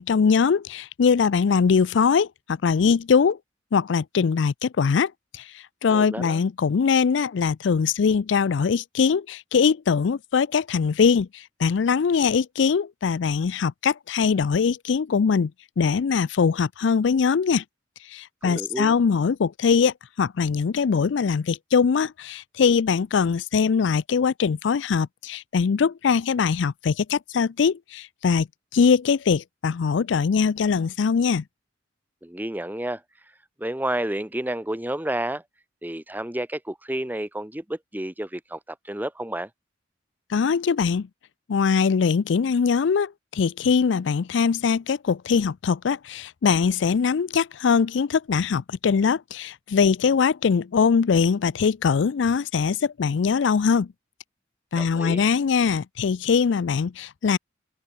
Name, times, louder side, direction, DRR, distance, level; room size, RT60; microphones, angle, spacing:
voice 1, 0.0-3.4 3.7-5.4 5.8-15.5 15.8-17.6 18.1-28.5 28.7-31.4 40.3-41.1 41.5-53.9 54.7-57.4, left 6 dB, 70° left, 0.4 m, -22 dB
voice 2, 5.9-6.4 18.4-18.9 32.2-33.0 33.6-35.4 35.8-38.6 38.9-39.5 54.7-55.2, right 1 dB, 10° right, 1.2 m, -30 dB
open air
head